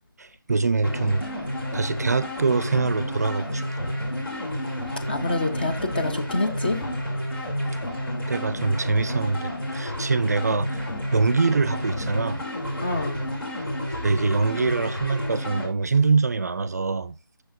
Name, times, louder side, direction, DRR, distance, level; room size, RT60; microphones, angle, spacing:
voice 1, 0.2-1.2 1.7-3.9 8.3-12.4 13.9-17.2, right 4 dB, 45° right, 0.4 m, -24 dB
sound 1, 0.8-15.7, equal, 70° left, 2.7 m, -30 dB
voice 2, 5.1-6.8 12.8-13.2, left 2 dB, 25° left, 0.5 m, -26 dB
7.6 x 6.4 x 2.5 m
figure-of-eight pair, 170°, 12 cm